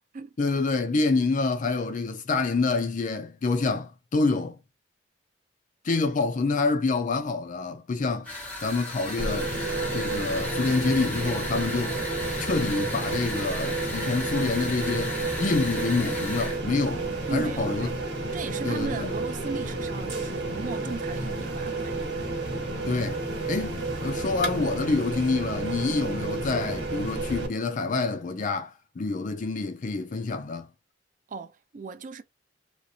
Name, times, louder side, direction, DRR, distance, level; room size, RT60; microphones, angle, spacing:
voice 1, 0.4-4.6 5.8-8.3 8.6-9.5 9.9-12.0 12.4-17.9 18.6-19.1 22.9-30.7, left 3 dB, 45° left, 0.5 m, -27 dB
sound 1, 8.2-16.6, left 1 dB, 10° left, 1.3 m, -35 dB
sound 2, 9.2-27.5, right 2 dB, 60° right, 1.4 m, -31 dB
voice 2, 17.3-18.0 18.3-22.0 31.3-32.2, right 4 dB, 45° right, 0.4 m, -36 dB
3.0 x 2.4 x 2.6 m
head